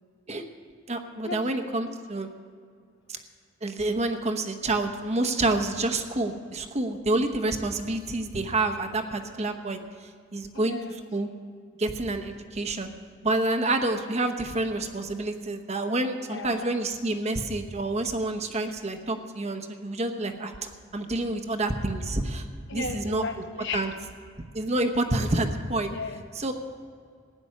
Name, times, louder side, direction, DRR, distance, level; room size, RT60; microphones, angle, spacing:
voice 1, 0.9-2.3 3.1-3.2 3.6-9.8 10.3-10.8 11.1-11.3 11.8-12.9 13.2-22.4 22.7-23.2 23.7-23.9 24.5-25.9 26.4-26.5, right 2 dB, 30° right, 6 dB, 0.9 m, -28 dB
voice 2, 10.5-11.0 16.2-16.7 22.7-23.9 25.9-26.2, left 4 dB, 60° left, 5 dB, 1.2 m, -35 dB
15.5 x 7.0 x 9.7 m, 2.1 s
head